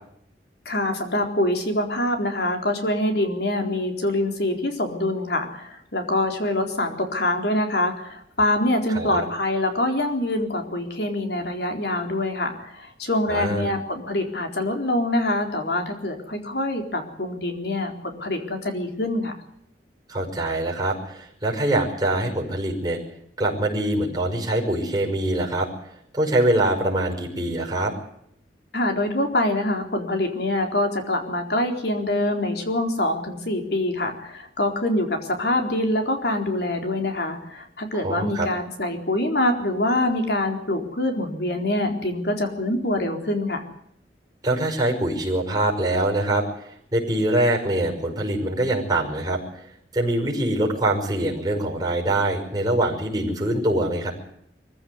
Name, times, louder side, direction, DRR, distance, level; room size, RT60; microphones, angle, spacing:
voice 1, 0.7-19.3 28.7-43.6, left 1 dB, 65° left, 4 dB, 4.1 m, -25 dB
voice 2, 8.9-9.2 13.3-13.7 20.1-23.0 23.4-25.7 26.1-27.9 38.0-38.5 44.4-46.4 46.9-49.4 49.9-54.1, right 1 dB, 20° right, -1 dB, 5.9 m, -24 dB
23.0 x 15.5 x 9.7 m, 0.71 s
head